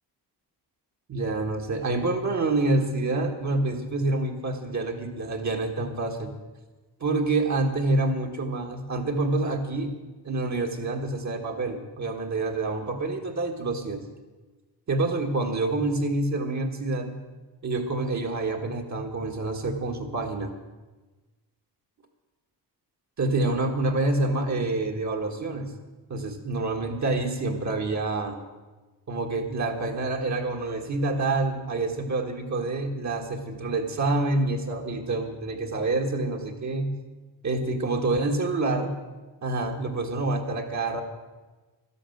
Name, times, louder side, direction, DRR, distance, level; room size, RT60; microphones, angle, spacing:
voice 1, 1.1-6.3 7.0-9.9 10.2-14.0 14.9-17.2 17.6-20.5 23.2-25.7 26.1-28.4 29.1-37.0 37.4-38.9 39.4-41.0, right 2 dB, 45° right, 2 dB, 1.7 m, -27 dB
12.5 x 11.5 x 7.9 m, 1.2 s
wide cardioid pair, 155°, 40 cm